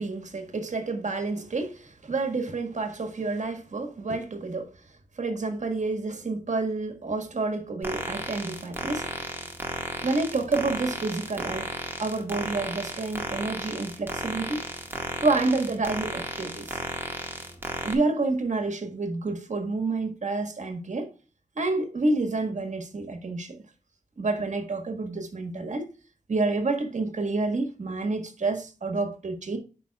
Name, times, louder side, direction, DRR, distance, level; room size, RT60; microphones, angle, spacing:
voice 1, 0.0-4.7 5.2-9.1 10.0-11.7 12.0-14.6 15.2-16.8 17.8-21.1 21.5-23.6 24.2-25.8 26.3-29.6, right 3 dB, 65° right, 1.7 m, -29 dB
sound 1, 7.8-17.9, right 1 dB, 15° right, 1.7 m, -34 dB
11.5 x 5.2 x 2.4 m
wide cardioid pair, 85°, 13 cm